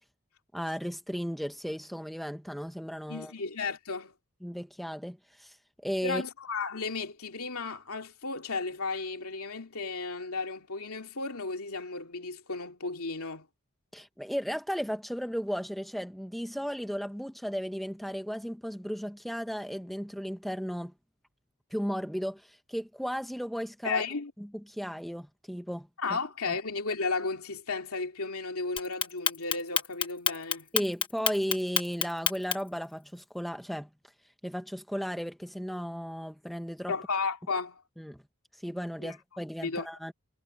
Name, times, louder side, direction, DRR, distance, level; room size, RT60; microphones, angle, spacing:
voice 1, 0.5-3.3 4.4-5.6 5.8-6.2 13.9-20.9 21.7-24.0 24.4-25.9 26.5-26.6 30.7-33.9 34.4-36.9 38.0-38.2 38.6-40.1, equal, ahead, 1.1 m, -35 dB
voice 2, 3.1-4.1 6.0-13.5 23.8-24.3 26.0-30.7 36.9-37.8 39.0-39.1 39.6-39.9, left 4 dB, 80° left, 2.7 m, -34 dB
Clock, 28.8-32.8, left 8 dB, 25° left, 1.1 m, -28 dB
head